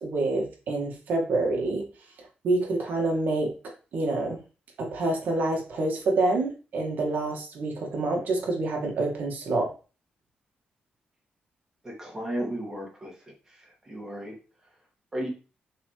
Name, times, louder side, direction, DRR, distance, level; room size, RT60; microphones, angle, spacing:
voice 1, 0.0-1.8 2.4-3.5 3.9-4.4 4.8-9.7, right 2 dB, 65° right, 1 dB, 2.0 m, -27 dB
voice 2, 11.8-13.1 13.9-14.3 15.1-15.3, right 1 dB, 20° right, -1 dB, 2.2 m, -33 dB
7.4 x 4.3 x 3.3 m, 0.35 s
wide cardioid pair, 160°, 3 cm